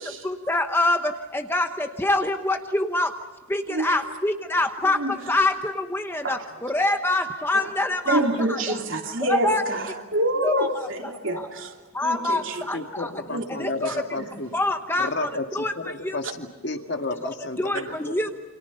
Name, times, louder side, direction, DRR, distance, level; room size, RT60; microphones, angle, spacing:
voice 1, 0.2-3.1 3.5-8.2 8.5-8.8 9.2-9.6 10.4-10.9 11.3-11.5 11.9-13.1 13.5-14.1 14.5-16.2 17.6-18.3, left 2 dB, 10° left, 1.0 m, -25 dB
voice 2, 8.1-9.8 10.1-11.7 12.0-12.8 13.3-13.5 13.9-14.3, right 1 dB, 60° right, 3.0 m, -27 dB
voice 3, 12.7-14.5 15.0-18.1, left 2 dB, 50° left, 1.8 m, -32 dB
29.0 x 27.0 x 5.7 m
head